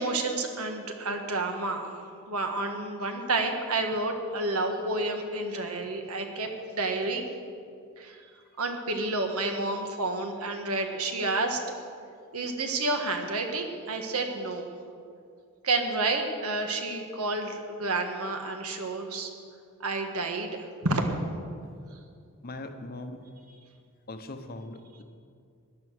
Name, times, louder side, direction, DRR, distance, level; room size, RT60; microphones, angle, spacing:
voice 1, 0.0-7.3 8.0-8.2 8.6-11.6 12.3-14.7 15.6-19.3 19.8-21.2, right 2 dB, 80° right, 4 dB, 1.6 m, -30 dB
voice 2, 22.4-23.2 24.1-25.0, left 2 dB, 45° left, 7 dB, 1.0 m, -40 dB
14.5 x 10.0 x 6.5 m, 2.3 s
head